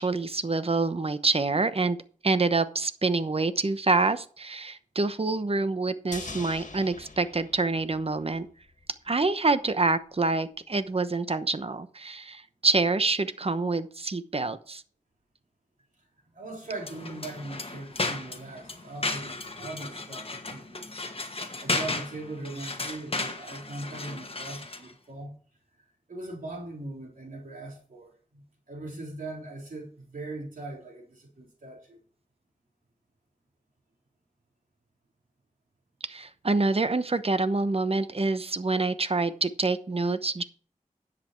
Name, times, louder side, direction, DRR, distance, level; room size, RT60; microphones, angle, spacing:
voice 1, 0.0-2.0 2.2-8.5 9.1-14.8 36.0-40.4, right 3 dB, 45° right, 12 dB, 1.0 m, -26 dB
sound 1, 6.1-8.5 8.8-8.9, left 3 dB, 65° left, 1.8 m, -42 dB
voice 2, 16.3-20.9 21.4-25.3 26.1-32.0, right 2 dB, 85° right, -1 dB, 4.2 m, -40 dB
sound 2, 16.8-24.9, left 2 dB, 45° left, 1.5 m, -34 dB
10.5 x 7.8 x 4.5 m, 0.42 s
cardioid pair, 45°, 14 cm